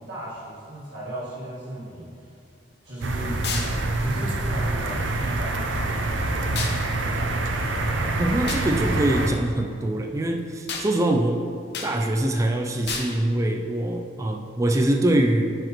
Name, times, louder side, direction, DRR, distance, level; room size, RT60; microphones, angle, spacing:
voice 1, 0.0-2.2 2.8-3.4 3.9-7.3, right 1 dB, 55° right, -11 dB, 1.7 m, -36 dB
sound 1, 3.0-9.3, right 2 dB, 75° right, 0.6 m, -26 dB
sound 2, 3.4-3.7 6.5-6.8 8.5-8.7 10.7-10.9 11.7-11.9 12.9-13.1, left 5 dB, 55° left, 0.8 m, -30 dB
voice 2, 8.2-11.4 11.8-15.4, right 1 dB, 15° right, 3 dB, 0.3 m, -23 dB
10.0 x 4.9 x 3.1 m, 2.4 s
head